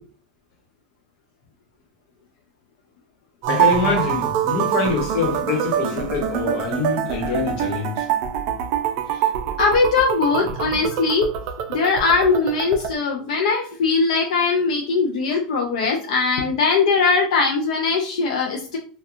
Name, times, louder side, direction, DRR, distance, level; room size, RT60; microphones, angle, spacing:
sound 1, 3.4-12.9, right 10 dB, 50° right, 0.3 m, -25 dB
voice 1, 3.5-8.1, left 4 dB, 55° left, 1.0 m, -24 dB
voice 2, 9.6-11.3 11.7-18.8, left 4 dB, 85° left, 0.4 m, -20 dB
2.8 x 2.2 x 2.4 m
supercardioid pair, 145°, 4 cm